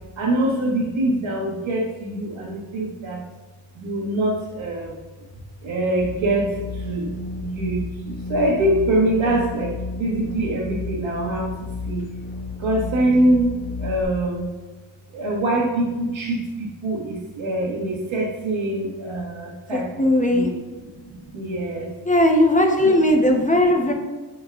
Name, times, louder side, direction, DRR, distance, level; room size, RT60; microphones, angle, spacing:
voice 1, 0.2-3.2 3.8-5.0 5.6-7.1 7.4-11.5 11.9-12.1 12.6-13.5 13.8-14.5 15.1-20.5 21.0-21.9 22.8-22.9, right 1 dB, 80° right, -2 dB, 1.8 m, -24 dB
sound 1, 6.0-14.0, left 3 dB, 60° left, 1.3 m, -32 dB
voice 2, 19.7-20.5 22.0-23.9, left 1 dB, 15° left, 2 dB, 0.8 m, -18 dB
8.4 x 5.1 x 2.4 m, 1.3 s
cardioid pair, 95°, 48 cm